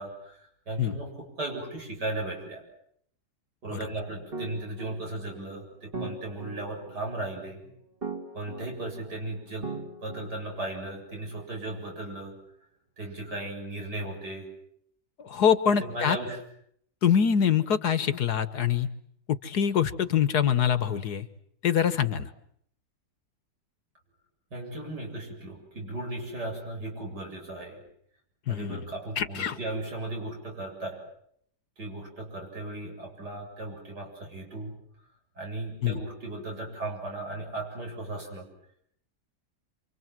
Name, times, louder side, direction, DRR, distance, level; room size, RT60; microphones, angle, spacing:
voice 1, 0.0-2.6 3.6-7.8 8.3-9.7 10.0-12.4 13.0-14.5 15.7-16.4 24.5-27.8 28.5-31.0 31.8-34.8 35.4-38.5, right 2 dB, 90° right, 1 dB, 8.2 m, -36 dB
sound 1, 4.3-11.0, right 3 dB, 35° right, 2.8 m, -40 dB
voice 2, 15.2-16.2 17.0-18.9 19.4-21.3 21.6-22.3 28.5-28.8 29.2-29.6 35.8-36.0, left 8 dB, 75° left, 13 dB, 1.9 m, -24 dB
28.5 x 25.0 x 7.7 m, 0.69 s
omnidirectional pair, 1.7 m